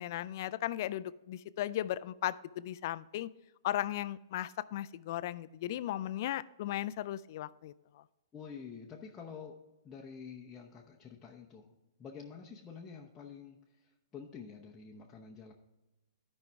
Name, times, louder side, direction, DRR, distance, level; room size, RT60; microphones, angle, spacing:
voice 1, 0.0-3.3 3.6-7.7, left 13 dB, 50° left, 16 dB, 0.3 m, -36 dB
voice 2, 8.3-9.6 9.8-11.7 12.0-15.5, left 6 dB, 15° left, -3 dB, 0.8 m, -48 dB
12.5 x 5.3 x 3.5 m, 1.0 s
hypercardioid pair, 145°, 2 cm